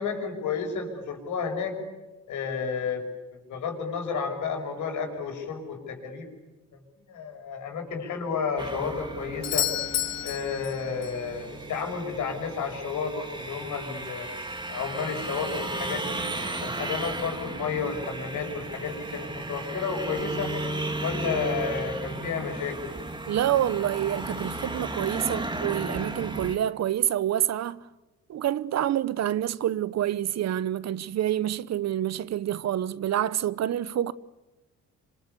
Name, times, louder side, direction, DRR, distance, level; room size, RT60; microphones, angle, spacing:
voice 1, 0.0-1.8 2.3-3.0 3.5-6.3 6.7-6.8 7.1-9.7 10.2-14.3 14.7-16.2 16.6-20.5 21.0-22.9, left 5 dB, 75° left, 6.2 m, -31 dB
sound 1, 8.6-26.6, right 2 dB, 15° right, 2.3 m, -35 dB
Doorbell, 9.4-11.3 15.3-15.4, left 12 dB, 60° left, 0.8 m, -30 dB
voice 2, 23.3-27.8 28.3-34.1, right 11 dB, 60° right, 0.9 m, -27 dB
26.5 x 25.5 x 7.0 m
cardioid pair, 90°, 30 cm